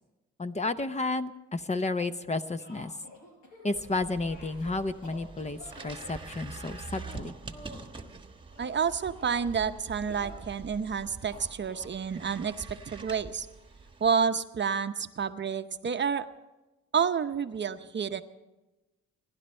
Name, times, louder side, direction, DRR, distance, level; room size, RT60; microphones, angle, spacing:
voice 1, 0.4-2.9 3.6-7.3, left 3 dB, 25° left, 11 dB, 0.8 m, -32 dB
sound 1, 2.3-3.9 4.2-6.2 6.9-7.9 8.5-9.4 10.1-10.5 11.3-11.9, left 1 dB, 80° left, 4.9 m, -50 dB
sound 2, 3.7-14.3, right 3 dB, 15° right, 1.3 m, -45 dB
voice 2, 8.6-13.5 14.0-16.3 16.9-18.2, right 6 dB, 35° right, 9 dB, 0.8 m, -29 dB
28.5 x 11.5 x 4.4 m, 1.1 s
cardioid pair, 90°, 30 cm